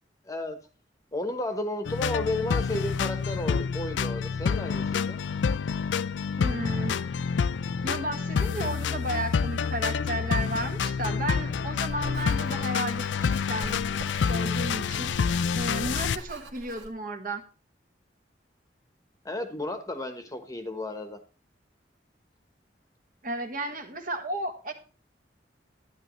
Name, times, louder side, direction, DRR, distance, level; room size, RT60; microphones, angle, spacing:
voice 1, 0.3-0.6 1.1-5.2 19.2-21.2, left 1 dB, 20° left, 7 dB, 1.1 m, -33 dB
sound 1, 1.8-16.2, left 6 dB, 85° left, 0.4 m, -28 dB
voice 2, 6.4-7.0 7.8-13.8 14.2-15.1 15.5-17.4 23.2-24.7, right 1 dB, 50° right, 4 dB, 1.6 m, -33 dB
Writing, 11.9-16.9, right 1 dB, 85° right, 1.7 m, -43 dB
11.5 x 9.6 x 3.1 m, 0.33 s
head